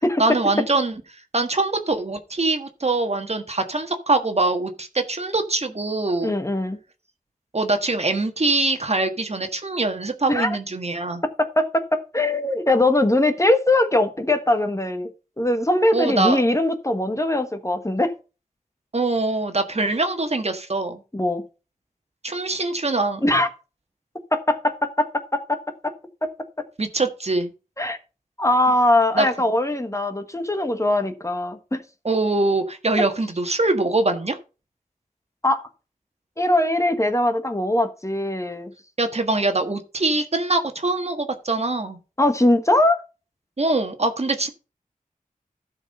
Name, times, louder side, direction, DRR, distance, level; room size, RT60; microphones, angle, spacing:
voice 1, 0.2-0.9 1.3-6.3 7.5-11.2 15.9-16.4 18.9-21.0 22.2-23.3 26.8-27.5 29.1-29.3 32.0-34.4 39.0-42.0 43.6-44.5, right 2 dB, 45° right, 1.5 m, -23 dB
voice 2, 6.2-6.8 10.3-10.6 11.2-15.1 15.4-18.1 21.1-21.4 23.2-23.5 24.3-25.9 26.2-26.7 27.8-28.0 28.4-31.8 35.4-35.7 36.4-38.7 42.2-43.0, left 1 dB, 20° left, 1.3 m, -21 dB
12.5 x 4.8 x 5.5 m
wide cardioid pair, 65°, 15 cm